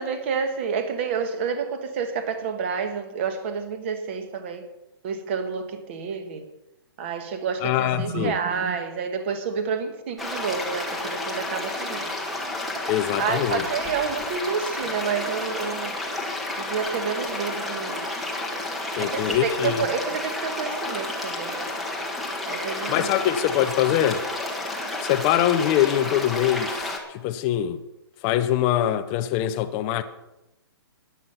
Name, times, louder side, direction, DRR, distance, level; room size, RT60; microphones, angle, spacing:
voice 1, 0.0-4.7 5.0-6.4 7.0-12.1 13.2-16.0 16.6-18.1 19.0-21.7 22.4-23.3, right 6 dB, 30° right, 1.4 m, -29 dB
voice 2, 7.6-8.3 12.9-13.6 19.0-19.8 22.9-24.2 25.0-27.8 28.2-30.0, left 11 dB, 15° left, 0.5 m, -23 dB
sound 1, 10.2-27.0, left 2 dB, ahead, 1.1 m, -31 dB
14.0 x 10.5 x 5.6 m
hypercardioid pair, 170°, 13 cm